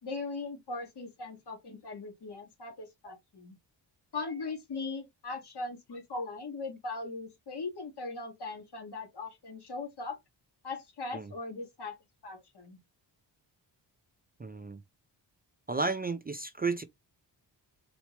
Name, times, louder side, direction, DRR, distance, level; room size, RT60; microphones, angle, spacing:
voice 1, 0.0-3.6 4.1-10.2 10.6-12.0 12.2-12.8, left 3 dB, 60° left, 2.1 m, -39 dB
voice 2, 14.4-14.8 15.7-16.8, right 3 dB, 20° right, 0.5 m, -32 dB
4.1 x 3.1 x 3.2 m
cardioid pair, 85°, 45 cm